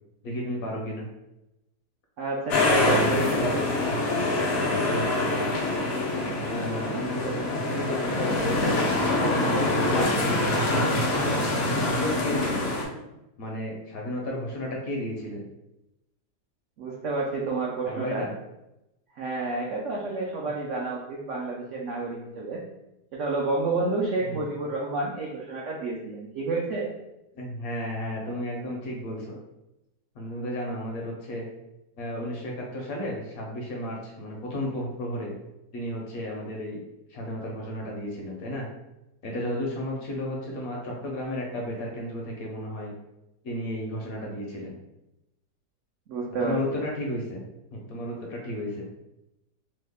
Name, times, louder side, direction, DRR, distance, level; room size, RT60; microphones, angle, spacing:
voice 1, 0.2-1.1 3.1-3.5 4.8-5.5 6.4-8.6 9.5-11.4 11.8-12.7 13.4-15.5 17.8-18.3 24.2-24.4 27.3-29.4 30.2-31.5 32.0-35.3 35.7-36.8 37.1-38.7 39.2-42.9 43.4-44.7 46.4-47.4 47.7-49.0, left 1 dB, 65° left, -1 dB, 1.0 m, -33 dB
voice 2, 2.2-3.6 16.8-18.3 19.1-22.6 23.1-26.9 46.1-46.8, right 3 dB, 80° right, -3 dB, 0.6 m, -30 dB
sound 1, 2.5-12.8, left 2 dB, 85° left, 0.5 m, -25 dB
3.1 x 2.1 x 3.4 m, 0.92 s
omnidirectional pair, 1.8 m